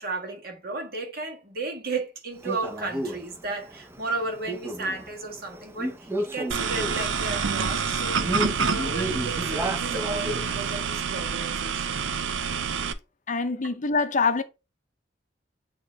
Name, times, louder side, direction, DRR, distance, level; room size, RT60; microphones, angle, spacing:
voice 1, 0.0-12.0, right 3 dB, 50° right, 1.8 m, -34 dB
Male speech man speaking, 2.4-11.0, equal, 15° right, 0.6 m, -34 dB
sound 1, 6.5-12.9, right 6 dB, 80° right, 0.6 m, -28 dB
voice 2, 13.3-14.4, left 4 dB, 40° left, 0.6 m, -24 dB
8.6 x 3.0 x 4.5 m
head